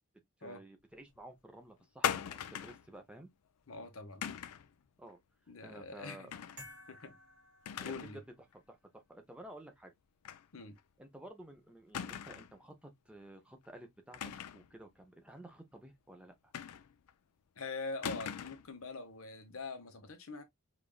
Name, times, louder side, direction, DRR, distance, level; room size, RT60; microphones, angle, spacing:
voice 1, 0.4-3.3 5.0-5.2 5.6-6.3 7.7-8.2 8.5-9.9 11.0-16.5, right 1 dB, 5° right, 0.6 m, -53 dB
sound 1, 2.0-2.9 4.2-4.7 6.3-6.6 7.0-7.1 7.7-8.2 8.5-8.6 10.2-10.5 10.8-10.9 11.9-12.6 14.1-14.7 16.5-17.1 18.0-18.7, left 9 dB, 85° left, 0.4 m, -39 dB
voice 2, 3.7-4.3 5.5-6.3 6.9-7.2 7.8-8.2 10.5-10.8 17.6-20.4, left 3 dB, 65° left, 0.9 m, -44 dB
sound 2, 6.6-8.5, left 1 dB, 50° right, 2.6 m, -55 dB
5.1 x 2.5 x 2.3 m
head